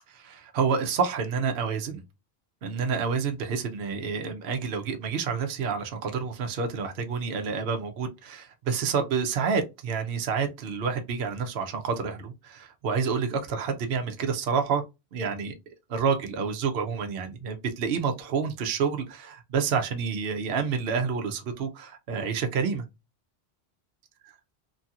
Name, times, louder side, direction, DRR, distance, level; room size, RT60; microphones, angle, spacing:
voice 1, 0.1-2.0 2.6-14.8 15.1-15.5 15.9-22.8, right 5 dB, 65° right, 0.8 m, -28 dB
2.9 x 2.8 x 2.3 m
omnidirectional pair, 1.1 m